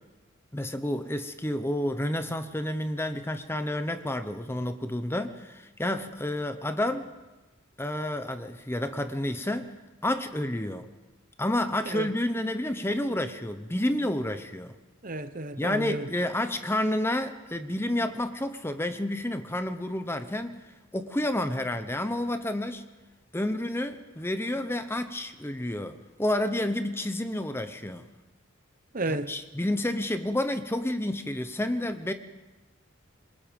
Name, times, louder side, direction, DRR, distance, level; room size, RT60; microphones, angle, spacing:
voice 1, 0.5-7.1 7.8-9.7 10.0-10.9 11.4-14.7 15.6-20.6 20.9-22.8 23.3-28.0 29.1-32.1, left 1 dB, 10° left, 0.9 m, -30 dB
voice 2, 15.0-16.0 28.9-29.3, right 2 dB, 40° right, 1.0 m, -32 dB
27.5 x 22.0 x 5.3 m
head